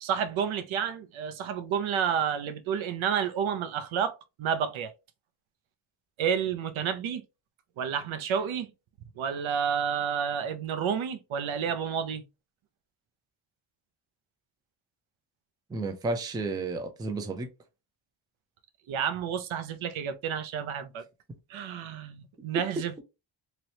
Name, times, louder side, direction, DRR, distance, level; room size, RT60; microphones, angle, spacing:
voice 1, 0.0-4.1 4.4-4.9 6.2-7.2 7.8-8.7 9.2-12.2 18.9-21.0 21.5-23.0, right 7 dB, 70° right, 0.7 m, -30 dB
voice 2, 15.7-17.5 22.5-22.6, right 3 dB, 10° right, 0.3 m, -32 dB
3.0 x 3.0 x 2.7 m
wide cardioid pair, 165°, 50 cm